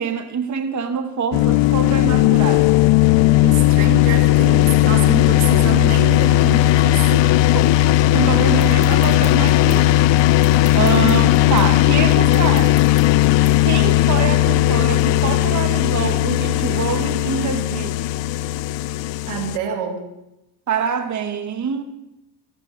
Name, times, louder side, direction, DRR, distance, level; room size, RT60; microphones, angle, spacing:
voice 1, 0.0-2.7 7.1-10.1 10.7-12.8 13.6-17.9 20.7-21.8, right 6 dB, 35° right, 1.2 m, -25 dB
sound 1, 1.3-19.6, left 15 dB, 65° left, 0.5 m, -16 dB
voice 2, 3.4-7.1 19.3-20.0, right 8 dB, 85° right, 2.2 m, -27 dB
sound 2, 8.6-13.8, left 2 dB, 15° left, 3.3 m, -43 dB
16.5 x 14.5 x 3.8 m
supercardioid pair, 85°, 48 cm